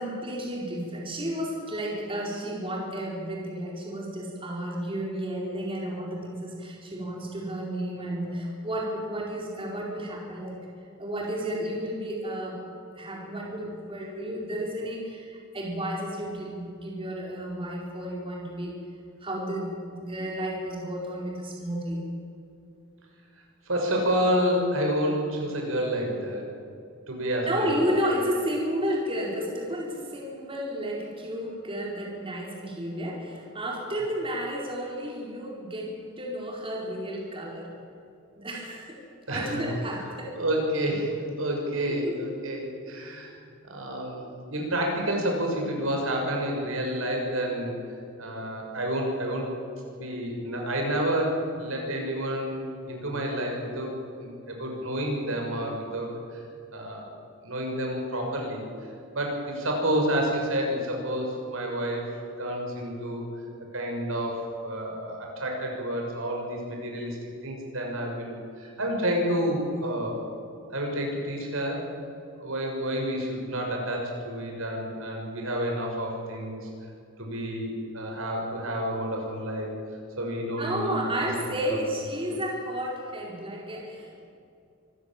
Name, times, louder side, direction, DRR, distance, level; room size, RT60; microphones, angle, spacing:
voice 1, 0.0-10.6 11.0-12.6 13.0-18.7 19.2-22.1 27.5-37.7 38.4-39.0 39.3-40.4 42.0-42.1 80.6-84.2, equal, 25° right, -2 dB, 4.3 m, -32 dB
voice 2, 23.7-26.5 27.1-27.9 39.3-39.7 40.3-43.3 43.6-47.7 48.2-49.5 49.9-53.9 54.2-56.4 56.7-57.0 57.4-58.6 59.1-63.2 63.7-67.2 67.4-70.2 70.7-71.9 72.4-76.7 77.2-79.7 80.2-81.3 81.7-81.8 82.3-82.4, equal, 75° right, 1 dB, 6.4 m, -29 dB
25.5 x 15.5 x 9.1 m, 2.6 s
head